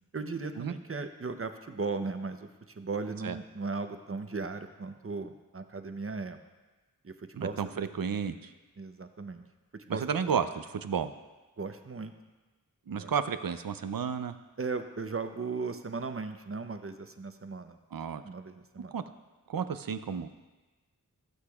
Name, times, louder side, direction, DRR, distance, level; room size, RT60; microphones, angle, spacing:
voice 1, 0.1-6.4 7.0-7.8 8.8-9.5 9.7-10.0 11.6-12.1 12.9-13.1 14.6-17.8 18.2-19.0, right 4 dB, 40° right, 7 dB, 0.7 m, -37 dB
voice 2, 7.4-8.5 10.0-11.1 12.9-14.3 17.9-18.2 18.9-19.0 19.5-20.3, right 7 dB, 80° right, 11 dB, 0.6 m, -32 dB
16.0 x 8.0 x 2.4 m, 1.2 s
wide cardioid pair, 60°, 34 cm